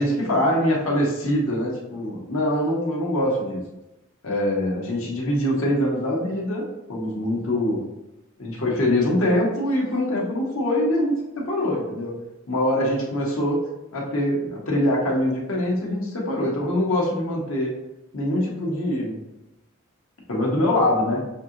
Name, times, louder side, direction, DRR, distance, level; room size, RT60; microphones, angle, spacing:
voice 1, 0.0-3.6 4.2-6.6 6.9-7.8 8.4-12.1 12.5-13.6 13.9-17.7 18.1-19.2 20.3-21.2, left 1 dB, 75° left, -2 dB, 1.2 m, -23 dB
6.5 x 2.8 x 2.6 m, 0.94 s
head